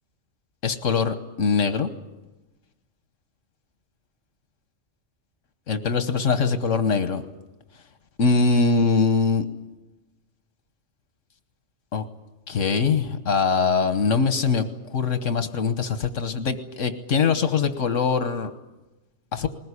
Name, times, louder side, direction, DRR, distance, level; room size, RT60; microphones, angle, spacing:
voice 1, 0.6-1.9 5.7-7.3 8.2-9.4 11.9-12.0 12.5-14.6 14.9-18.5 19.3-19.5, left 5 dB, 80° left, 9 dB, 1.6 m, -22 dB
21.0 x 20.0 x 9.8 m, 1.1 s
omnidirectional pair, 1.3 m